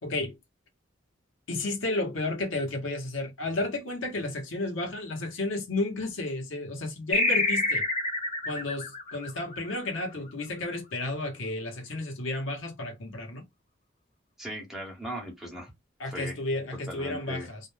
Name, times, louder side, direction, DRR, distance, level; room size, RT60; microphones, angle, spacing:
voice 1, 0.0-0.4 1.5-7.8 8.4-13.4 16.0-17.6, left 2 dB, 90° left, 1.0 m, -32 dB
sound 1, 7.1-10.1, left 2 dB, 35° left, 0.7 m, -28 dB
voice 2, 14.4-15.7 16.1-16.4 16.9-17.5, equal, ahead, 1.0 m, -38 dB
2.5 x 2.2 x 3.1 m
head